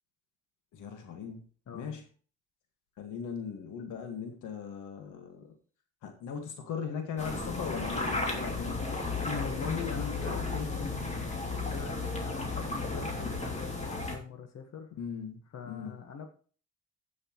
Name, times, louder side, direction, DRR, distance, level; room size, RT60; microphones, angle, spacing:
voice 1, 0.7-1.4 1.7-2.0 3.0-5.5 6.0-8.8 15.0-15.4 15.7-16.0, left 6 dB, 85° left, 5 dB, 2.0 m, -39 dB
sound 1, 7.2-14.2, left 3 dB, 20° left, 2.8 m, -34 dB
voice 2, 9.2-14.9 15.5-16.3, left 6 dB, 55° left, 5 dB, 1.7 m, -41 dB
15.0 x 6.4 x 3.1 m, 0.40 s
cardioid pair, 90°, 30 cm